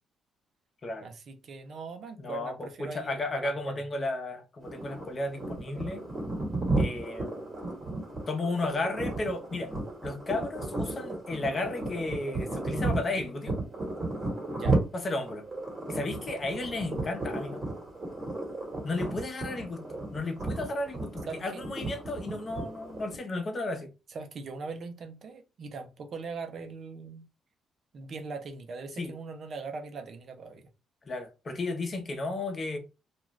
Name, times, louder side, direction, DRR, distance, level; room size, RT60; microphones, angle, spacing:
voice 1, 1.0-3.8 14.5-14.8 21.3-21.6 24.1-27.3 27.9-30.7, right 4 dB, 55° right, 0.7 m, -41 dB
voice 2, 2.2-6.1 6.8-7.5 8.3-9.7 10.0-13.6 14.9-15.5 15.9-17.6 18.8-23.9 29.0-29.1 31.0-32.8, left 2 dB, 35° left, 0.8 m, -33 dB
sound 1, 4.6-23.2, right 2 dB, 35° right, 1.4 m, -34 dB
2.5 x 2.3 x 3.1 m
cardioid pair, 90°, 0 cm